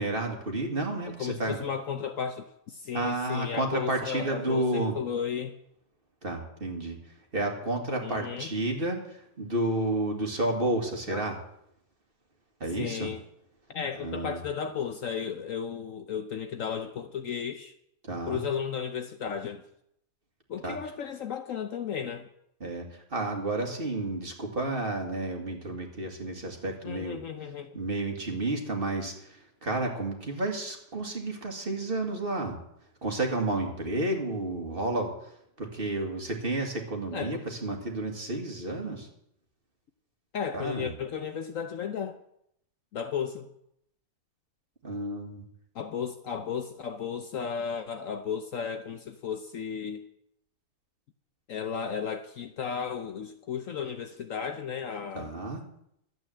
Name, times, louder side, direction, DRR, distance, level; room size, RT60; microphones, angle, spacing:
voice 1, 0.0-1.6 2.9-4.9 6.2-11.4 12.6-13.1 14.0-14.4 18.1-18.4 20.6-20.8 22.6-27.2 27.7-32.6 33.0-35.3 35.6-39.1 40.5-40.9 44.8-45.5 55.1-55.6, right 2 dB, 35° right, 2.0 m, -31 dB
voice 2, 1.0-5.5 8.0-8.5 11.1-11.3 12.8-13.2 13.7-17.7 18.3-19.6 20.5-22.3 26.8-27.8 37.1-37.5 40.3-42.2 42.9-43.5 45.7-50.0 51.5-55.3, left 7 dB, 60° left, 1.0 m, -34 dB
12.5 x 8.6 x 7.6 m
omnidirectional pair, 1.8 m